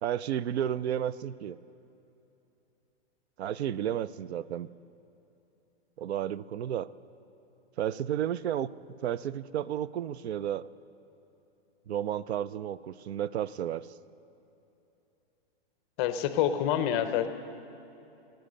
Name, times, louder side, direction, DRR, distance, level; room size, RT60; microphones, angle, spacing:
voice 1, 0.0-1.6 3.4-4.7 6.0-6.9 7.8-8.7 9.0-10.7 11.9-13.9, right 10 dB, 85° right, 17 dB, 0.5 m, -32 dB
voice 2, 16.0-17.3, left 10 dB, 25° left, 10 dB, 0.5 m, -27 dB
14.0 x 9.1 x 6.6 m, 2.9 s
hypercardioid pair, 150°, 32 cm